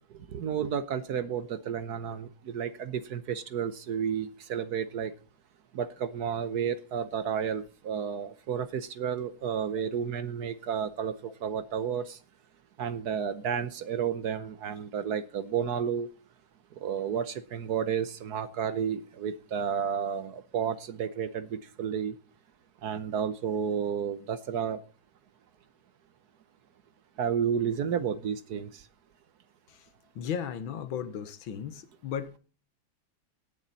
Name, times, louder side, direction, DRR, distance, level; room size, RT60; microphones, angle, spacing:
voice 1, 0.3-5.1 5.7-11.1 11.4-12.2 12.8-16.1 16.8-22.1 22.8-24.8 27.2-28.7, right 7 dB, 65° right, 1.2 m, -31 dB
voice 2, 30.2-32.4, left 8 dB, 80° left, 1.8 m, -35 dB
18.0 x 7.3 x 4.0 m
omnidirectional pair, 2.1 m